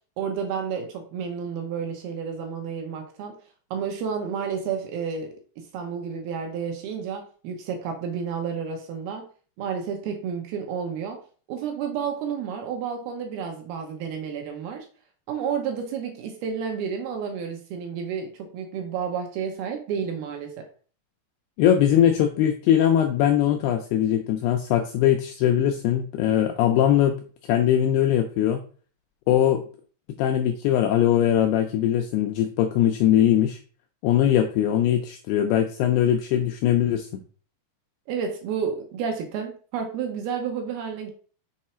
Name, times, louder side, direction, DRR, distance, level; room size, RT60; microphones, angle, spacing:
voice 1, 0.2-3.4 3.7-9.3 9.6-11.2 11.5-14.9 15.3-20.6 38.1-41.1, right 6 dB, 70° right, 3 dB, 2.5 m, -31 dB
voice 2, 21.6-27.2 27.5-28.6 29.3-29.6 30.2-33.6 34.0-37.1, left 10 dB, 85° left, 4 dB, 2.3 m, -21 dB
6.8 x 4.5 x 4.3 m, 0.41 s
omnidirectional pair, 5.2 m